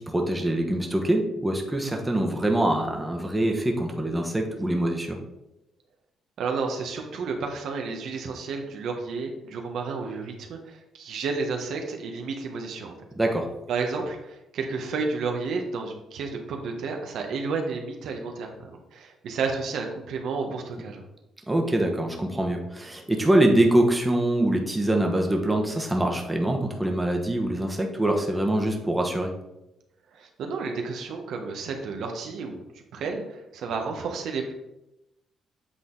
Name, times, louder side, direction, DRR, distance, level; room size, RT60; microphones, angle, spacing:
voice 1, 0.0-5.2 13.2-13.5 21.5-29.3, right 1 dB, 10° right, 2 dB, 1.1 m, -24 dB
voice 2, 6.4-12.9 13.7-21.0 30.1-32.6 32.9-34.5, right 4 dB, 75° right, 3 dB, 1.0 m, -31 dB
8.2 x 4.0 x 3.8 m, 0.92 s
cardioid pair, 90°, 0 cm